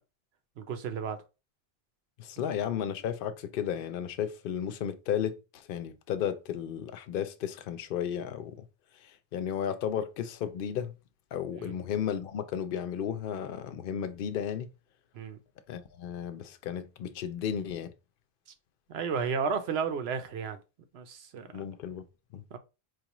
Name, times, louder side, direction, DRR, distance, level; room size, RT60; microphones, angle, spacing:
voice 1, 0.6-1.2 11.6-11.7 15.1-15.4 18.9-20.6 20.9-21.5 22.5-22.6, right 6 dB, 80° right, 0.9 m, -32 dB
voice 2, 2.2-8.7 8.9-10.9 11.3-14.7 15.7-17.9 21.5-22.0 22.3-22.4, left 9 dB, 65° left, 0.7 m, -34 dB
4.7 x 2.4 x 2.9 m
omnidirectional pair, 1.1 m